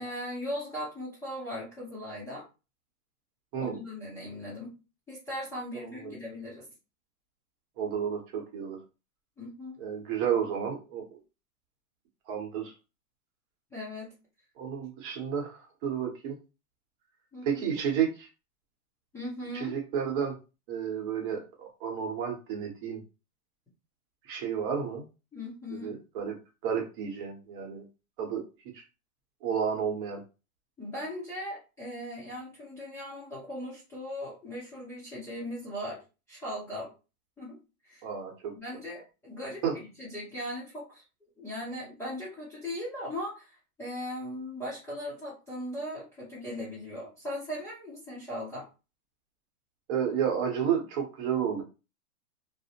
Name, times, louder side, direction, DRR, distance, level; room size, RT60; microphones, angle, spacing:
voice 1, 0.0-2.5 3.6-4.7 5.1-6.7 9.4-9.8 13.7-14.1 17.3-17.6 19.1-19.7 25.3-26.0 30.8-36.0 36.3-36.9 37.4-37.6 37.8-38.1 38.5-41.0 41.4-48.7, left 1 dB, 5° left, -9 dB, 0.5 m, -38 dB
voice 2, 5.8-6.2 7.8-8.8 9.8-11.2 12.3-12.7 14.6-16.4 17.4-18.3 19.5-20.4 20.7-23.0 24.2-25.0 25.7-26.4 26.6-27.8 28.2-28.4 28.7-28.8 29.4-30.2 38.0-38.5 39.6-39.7 49.9-51.6, right 8 dB, 35° right, 1 dB, 0.9 m, -31 dB
2.6 x 2.0 x 2.8 m, 0.30 s
hypercardioid pair, 140°, 43 cm